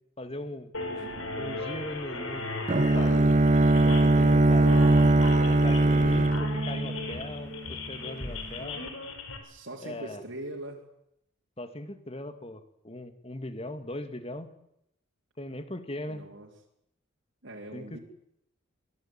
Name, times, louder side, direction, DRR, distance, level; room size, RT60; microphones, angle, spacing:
voice 1, 0.2-0.7 1.3-3.4 3.8-5.0 5.4-8.8 9.8-10.2 11.6-14.5 15.4-16.2 17.7-17.8, left 1 dB, 30° left, 10 dB, 2.1 m, -39 dB
sound 1, 0.7-9.4, left 2 dB, 80° left, 5.0 m, -37 dB
Bowed string instrument, 2.7-7.6, right 2 dB, 35° right, 0.9 m, -21 dB
voice 2, 9.4-10.8 16.1-16.5 17.4-18.0, right 1 dB, 65° right, -2 dB, 3.7 m, -42 dB
24.5 x 18.0 x 8.9 m, 0.77 s
head